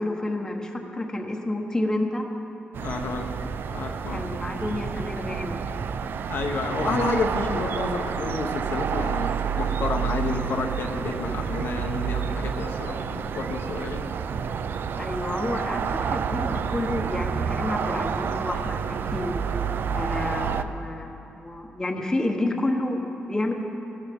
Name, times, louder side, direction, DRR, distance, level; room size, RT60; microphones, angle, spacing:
voice 1, 0.0-2.3 4.1-5.6 15.0-19.4 19.9-23.5, left 1 dB, 15° left, 2 dB, 1.2 m, -29 dB
sound 1, 2.7-20.6, right 7 dB, 65° right, 0.4 m, -29 dB
voice 2, 2.8-3.4 3.7-4.3 6.3-14.1, left 3 dB, 70° left, 2 dB, 1.0 m, -30 dB
16.5 x 12.5 x 3.6 m, 2.9 s
cardioid pair, 100°, 4 cm